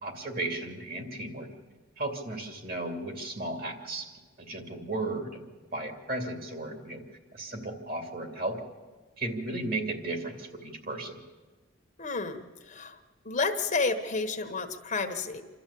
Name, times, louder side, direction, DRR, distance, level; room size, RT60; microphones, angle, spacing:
voice 1, 0.0-1.5 2.0-4.1 4.4-5.4 5.7-7.0 7.3-8.6 9.2-11.2, right 2 dB, 50° right, 4 dB, 2.7 m, -35 dB
voice 2, 12.0-13.0 13.2-15.4, left 4 dB, 40° left, 7 dB, 1.3 m, -31 dB
27.5 x 13.0 x 8.5 m, 1.3 s
head